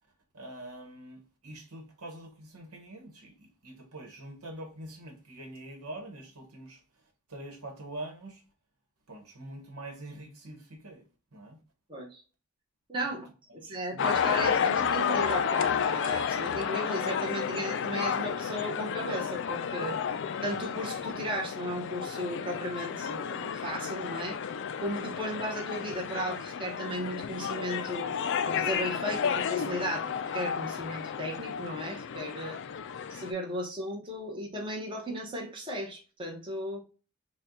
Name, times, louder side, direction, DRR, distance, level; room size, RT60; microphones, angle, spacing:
voice 1, 0.3-7.0 7.3-8.4 9.1-11.6 13.0-13.2 13.5-14.7 32.7-32.8, right 1 dB, 80° right, 1.2 m, -45 dB
voice 2, 11.9-12.2 12.9-13.2 13.5-20.0 20.4-24.4 24.8-28.1 28.4-32.6 33.1-36.8, equal, 20° right, 0.9 m, -35 dB
sound 1, 14.0-33.3, left 7 dB, 55° left, 0.4 m, -31 dB
4.3 x 2.3 x 3.7 m
head